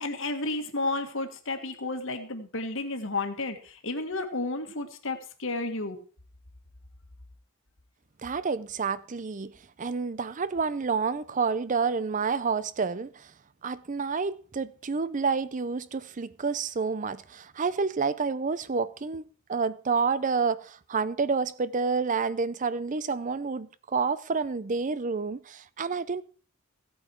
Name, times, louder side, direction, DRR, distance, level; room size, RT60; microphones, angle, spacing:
voice 1, 0.0-6.0, left 2 dB, 65° left, 1.8 m, -32 dB
voice 2, 8.2-9.5 9.8-13.3 13.6-19.2 19.5-26.2, right 5 dB, 35° right, 0.5 m, -29 dB
16.0 x 8.6 x 4.6 m
head